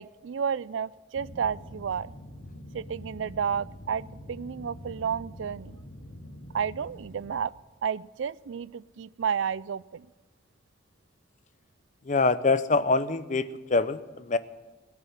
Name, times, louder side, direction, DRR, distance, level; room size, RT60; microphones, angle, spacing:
voice 1, 0.0-2.1 2.7-5.8 6.5-7.5 7.8-10.1, right 7 dB, 75° right, 20 dB, 0.4 m, -31 dB
sound 1, 1.1-7.5, equal, 60° left, 2.1 m, -45 dB
voice 2, 12.1-14.4, left 3 dB, 40° left, 14 dB, 0.6 m, -25 dB
17.0 x 6.9 x 9.8 m, 1.3 s
head